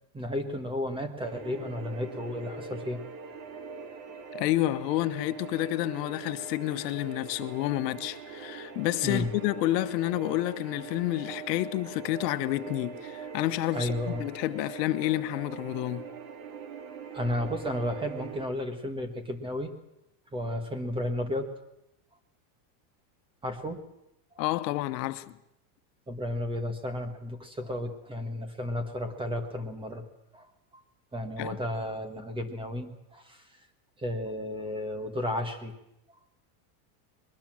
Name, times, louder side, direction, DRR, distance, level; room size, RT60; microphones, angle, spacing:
voice 1, 0.1-3.0 9.0-9.3 13.7-14.3 17.1-19.7 20.3-21.5 23.4-23.8 26.1-30.0 30.3-30.5 31.1-33.5 34.0-35.8, left 1 dB, 10° right, 1.5 m, -33 dB
sound 1, 1.2-18.5, right 5 dB, 85° right, 3.4 m, -42 dB
voice 2, 4.3-13.9 14.2-16.0 24.4-25.4 31.4-31.6, left 16 dB, 80° left, 1.2 m, -29 dB
21.5 x 20.0 x 7.6 m
supercardioid pair, 165°, 48 cm